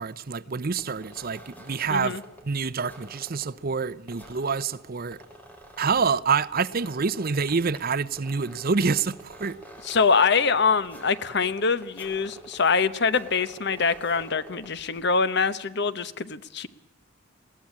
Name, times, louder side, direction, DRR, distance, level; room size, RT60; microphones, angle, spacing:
voice 1, 0.0-2.1 2.5-5.2 5.8-9.6, right 5 dB, 50° right, 0.7 m, -27 dB
sound 1, 0.8-15.2, right 1 dB, 10° left, 4.2 m, -48 dB
voice 2, 1.9-2.2 9.8-16.7, left 5 dB, 60° left, 1.0 m, -24 dB
21.0 x 16.5 x 8.6 m
head